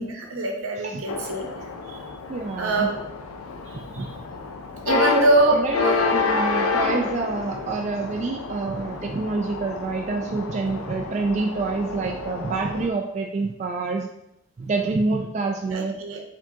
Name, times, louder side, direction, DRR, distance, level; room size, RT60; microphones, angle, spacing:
voice 1, 0.0-1.5 1.9-2.0 2.6-3.0 3.7-4.1 4.9-6.2 15.7-16.2, right 1 dB, 80° right, 2 dB, 0.8 m, -24 dB
voice 2, 0.7-1.0 2.3-2.9 3.7-4.1 4.9-14.1 14.6-15.9, right 3 dB, 35° right, 1 dB, 0.3 m, -27 dB
sound 1, 1.1-12.9, left 4 dB, 85° left, 0.4 m, -29 dB
4.8 x 3.5 x 2.7 m, 0.82 s
head